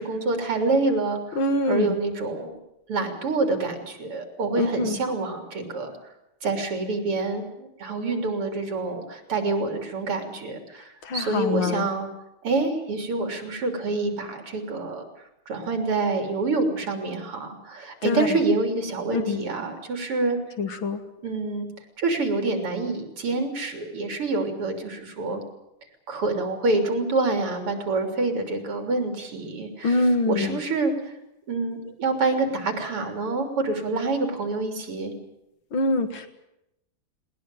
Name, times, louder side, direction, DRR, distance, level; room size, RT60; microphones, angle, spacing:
voice 1, 0.0-2.5 2.9-5.9 6.4-12.1 12.4-15.0 15.5-20.4 21.2-21.7 22.0-25.4 26.1-30.9 31.5-35.1, right 3 dB, 90° right, 5 dB, 4.4 m, -27 dB
voice 2, 1.4-1.9 4.6-5.0 11.1-11.9 18.0-18.3 19.1-19.4 20.6-21.0 29.8-30.6 35.7-36.3, left 2 dB, 65° left, 7 dB, 2.5 m, -24 dB
20.0 x 19.5 x 9.2 m, 0.85 s
omnidirectional pair, 2.4 m